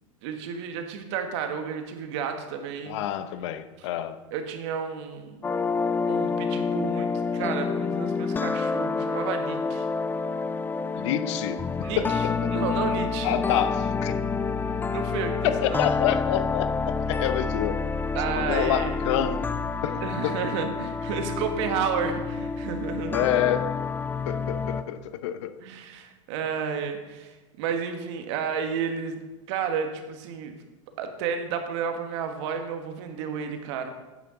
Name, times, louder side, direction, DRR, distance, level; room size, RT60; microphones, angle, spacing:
voice 1, 0.2-3.0 3.8-3.9 4.3-5.4 6.1-9.9 11.8-12.2 12.5-13.4 14.9-15.8 18.1-19.0 19.9-23.4 25.6-29.2 29.5-30.5 31.0-33.9, right 6 dB, 60° right, 6 dB, 1.4 m, -31 dB
voice 2, 2.9-4.2 11.0-12.5 13.2-14.2 15.4-17.8 18.3-19.4 19.8-20.3 23.1-23.7 24.3-25.5, left 10 dB, 65° left, 12 dB, 0.7 m, -28 dB
sound 1, 5.4-24.8, left 4 dB, 10° left, 0.3 m, -28 dB
9.1 x 9.0 x 3.8 m, 1.2 s
hypercardioid pair, 105°, 16 cm